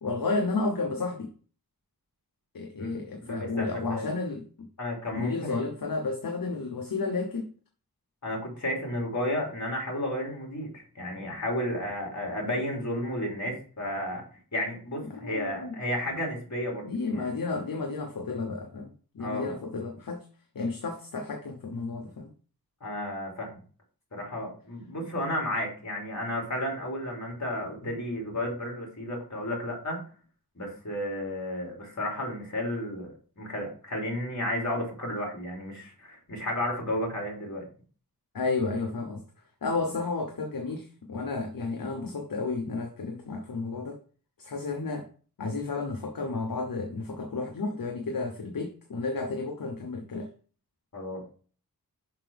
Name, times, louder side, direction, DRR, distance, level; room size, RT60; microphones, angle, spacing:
voice 1, 0.0-1.3 2.5-4.4 5.1-7.5 15.1-15.8 16.8-18.9 19.1-20.3 20.5-22.3 38.3-39.2 39.6-44.0 44.4-45.1 45.4-50.3, left 3 dB, 65° left, 0.9 m, -32 dB
voice 2, 3.3-4.1 4.8-5.6 8.2-14.2 14.5-17.3 19.2-19.5 22.8-23.6 24.1-30.0 30.5-37.7 50.9-51.2, left 1 dB, 50° left, 3.0 m, -32 dB
5.9 x 5.7 x 3.4 m
wide cardioid pair, 80°, 36 cm